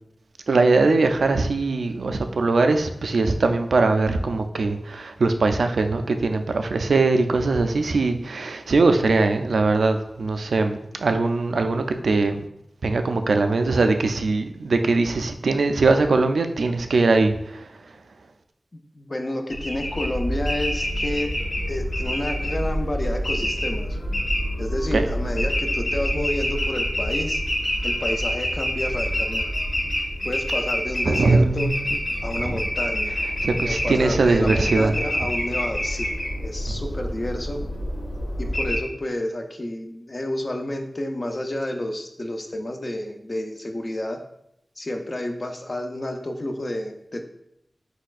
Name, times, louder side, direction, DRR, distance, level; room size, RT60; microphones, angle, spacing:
voice 1, 0.5-12.4 12.8-17.7 24.9-25.0 31.0-32.0 32.4-32.6 33.4-34.9, right 3 dB, 90° right, 6 dB, 0.3 m, -21 dB
voice 2, 18.9-21.3 21.7-24.0 24.6-27.4 27.8-29.5 30.2-31.7 32.2-33.2 33.6-37.6 38.4-44.2 44.8-47.2, left 1 dB, 35° left, 4 dB, 0.5 m, -30 dB
sound 1, 19.5-38.8, equal, 65° left, 1.7 m, -27 dB
4.6 x 4.2 x 2.4 m, 0.78 s
wide cardioid pair, 95°, 0 cm